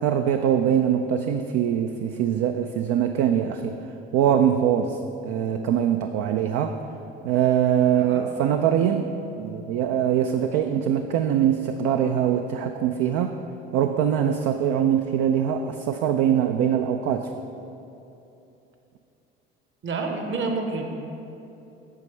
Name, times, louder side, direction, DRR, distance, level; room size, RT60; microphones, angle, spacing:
voice 1, 0.0-3.7 4.1-5.0 5.2-6.8 7.2-13.4 13.7-17.3, right 9 dB, 55° right, 6 dB, 0.4 m, -23 dB
voice 2, 7.9-8.3 19.8-20.9, right 3 dB, 40° right, 4 dB, 1.0 m, -29 dB
8.2 x 6.7 x 3.2 m, 2.9 s
hypercardioid pair, 60°, 30 cm